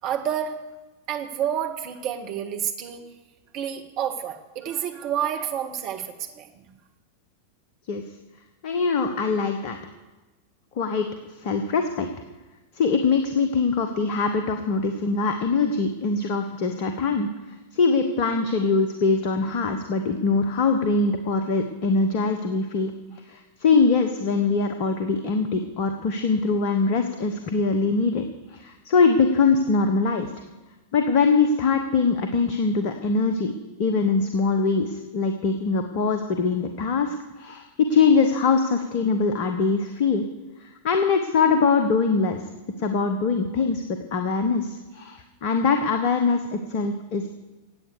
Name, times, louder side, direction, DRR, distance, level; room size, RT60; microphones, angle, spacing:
voice 1, 0.0-0.6 1.1-3.1 3.5-6.6, right 9 dB, 40° right, 4 dB, 1.8 m, -29 dB
voice 2, 8.6-9.8 10.8-11.1 11.4-12.1 12.7-30.3 30.9-40.2 40.6-42.4 42.8-47.3, left 4 dB, 45° left, 7 dB, 1.3 m, -23 dB
17.0 x 9.1 x 6.7 m, 1.2 s
figure-of-eight pair, 90°, 0 cm